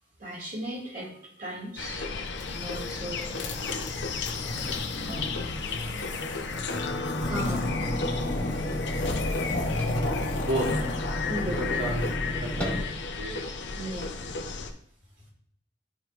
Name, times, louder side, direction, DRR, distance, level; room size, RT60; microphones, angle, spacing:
voice 1, 0.2-1.1 1.4-2.1 2.5-3.3 5.0-5.5 7.2-7.7 11.3-12.0 12.6-12.8 13.7-14.1, right 1 dB, 45° right, -4 dB, 2.1 m, -36 dB
sound 1, 1.8-14.7, left 4 dB, 65° left, 0.7 m, -33 dB
sound 2, 2.3-12.2, left 1 dB, 85° left, 1.4 m, -35 dB
sound 3, 7.2-12.8, left 1 dB, 5° left, 1.2 m, -33 dB
voice 2, 9.7-10.7 11.6-12.8 13.2-13.4 13.8-13.9 14.2-14.4, right 1 dB, 80° right, -4 dB, 1.4 m, -34 dB
12.0 x 4.7 x 2.5 m, 0.65 s
head